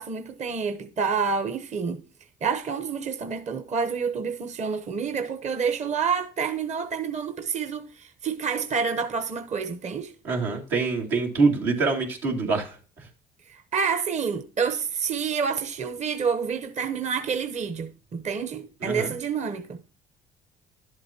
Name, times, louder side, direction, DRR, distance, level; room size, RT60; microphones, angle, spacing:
voice 1, 0.0-2.0 2.4-10.1 13.5-19.8, right 6 dB, 40° right, 0.9 m, -28 dB
voice 2, 10.2-12.8 18.8-19.1, right 4 dB, 90° right, 2.3 m, -25 dB
11.5 x 7.7 x 2.8 m
supercardioid pair, 70°, 18 cm